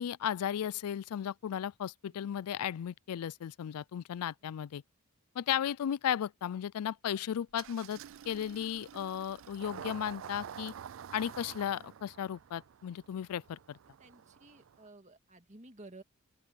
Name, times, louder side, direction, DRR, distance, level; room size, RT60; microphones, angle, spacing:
voice 1, 0.0-4.8 5.4-8.0 8.3-10.7 11.1-13.8, left 9 dB, 90° left, 0.4 m, -35 dB
Engine starting, 7.5-14.9, right 8 dB, 60° right, 0.3 m, -48 dB
voice 2, 13.9-16.0, right 2 dB, 30° right, 2.1 m, -54 dB
open air
head